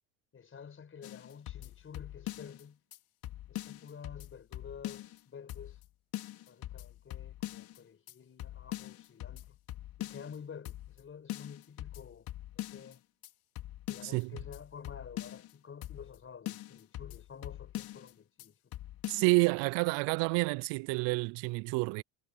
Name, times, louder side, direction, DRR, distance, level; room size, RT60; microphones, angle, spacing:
voice 1, 0.3-2.8 3.5-5.8 6.5-9.6 10.0-12.3 12.5-13.0 13.9-18.8, left 7 dB, 30° left, 6.5 m, -50 dB
sound 1, 1.0-2.6 2.9-3.0 3.2-5.2 5.5-5.9 6.1-7.8 8.1-8.2 8.4-10.4 10.7-11.0 11.3-13.0 13.2-13.3 13.6-15.5 15.8-16.2 16.5-18.1 18.4-18.5 18.7-19.3, left 14 dB, 55° left, 2.8 m, -42 dB
voice 2, 19.1-22.0, right 28 dB, 70° right, 0.5 m, -29 dB
cardioid pair, 130°, 44 cm